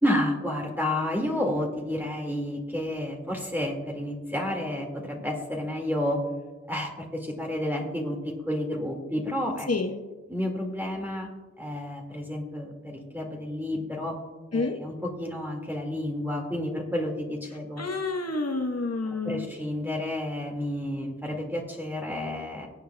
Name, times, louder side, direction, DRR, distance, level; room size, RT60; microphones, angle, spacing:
voice 1, 0.0-6.2 6.7-9.7 10.3-11.3 11.6-14.2 14.5-17.8 19.1-22.7, left 1 dB, 5° right, -1 dB, 2.0 m, -30 dB
voice 2, 9.7-10.0 14.5-14.8 17.8-19.5, left 3 dB, 55° left, 3 dB, 1.1 m, -28 dB
23.0 x 8.3 x 2.3 m, 1.2 s
wide cardioid pair, 45°, 30 cm